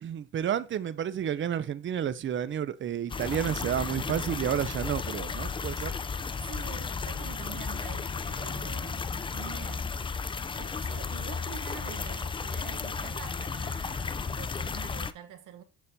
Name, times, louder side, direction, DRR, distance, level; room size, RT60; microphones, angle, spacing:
voice 1, 0.0-5.9, right 9 dB, 40° right, 0.5 m, -31 dB
sound 1, 3.1-15.1, left 5 dB, 20° left, 0.3 m, -34 dB
voice 2, 6.5-9.9 10.5-15.6, right 10 dB, 85° right, 1.0 m, -46 dB
7.2 x 6.7 x 2.7 m
cardioid pair, 90°, 30 cm